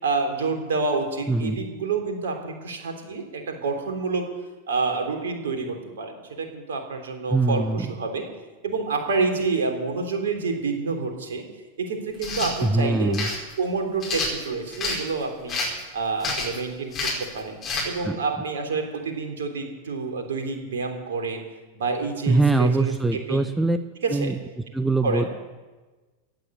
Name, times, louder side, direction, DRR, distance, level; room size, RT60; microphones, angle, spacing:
voice 1, 0.0-4.2 4.7-8.2 8.6-11.4 11.9-13.2 13.6-15.6 15.9-17.6 17.8-21.4 21.7-23.5 24.0-24.3 25.0-25.3, right 4 dB, 60° right, 3 dB, 3.5 m, -28 dB
voice 2, 1.3-1.6 7.3-7.9 12.6-13.3 18.0-18.2 22.3-23.8 24.1-24.4 24.7-25.2, right 2 dB, 5° right, 10 dB, 0.7 m, -22 dB
sound 1, 12.1-12.5 13.1-13.4 14.0-15.0 15.5-15.8 16.2-16.6 16.9-17.2 17.6-17.9, left 3 dB, 25° left, 5.4 m, -28 dB
15.5 x 10.0 x 8.6 m, 1.2 s
figure-of-eight pair, 90°, 0 cm